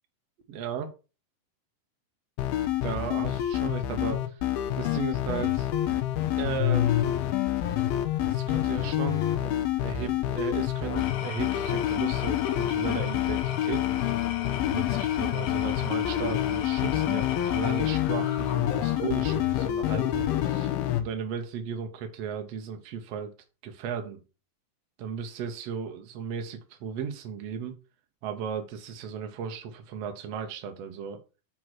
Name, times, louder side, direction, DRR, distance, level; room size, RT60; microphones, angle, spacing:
voice 1, 0.5-0.9 2.8-4.4 4.8-5.7 6.4-7.1 8.2-14.0 14.7-20.7 21.0-23.3 23.6-24.2 25.0-27.8 28.2-31.2, right 7 dB, 60° right, 1.7 m, -36 dB
sound 1, 2.4-21.0, left 12 dB, 90° left, 2.7 m, -27 dB
Engine / Tools, 10.8-19.1, left 9 dB, 75° left, 2.5 m, -37 dB
6.2 x 4.6 x 6.0 m
omnidirectional pair, 4.2 m